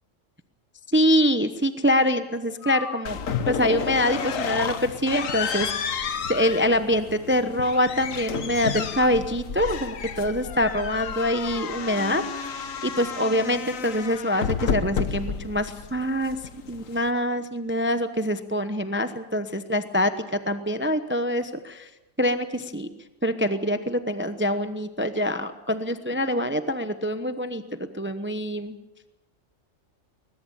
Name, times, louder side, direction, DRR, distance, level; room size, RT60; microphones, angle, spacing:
voice 1, 0.9-3.2 3.5-6.0 6.3-16.4 16.7-21.9 22.2-22.9 23.2-27.6 27.9-28.8, equal, 10° right, 9 dB, 0.8 m, -25 dB
Breathing, 2.6-3.3 4.1-4.8 6.0-6.8, left 5 dB, 55° left, 1.7 m, -34 dB
sound 1, 3.1-17.1, left 7 dB, 75° left, 1.5 m, -32 dB
21.5 x 20.0 x 7.0 m, 0.99 s
omnidirectional pair, 1.4 m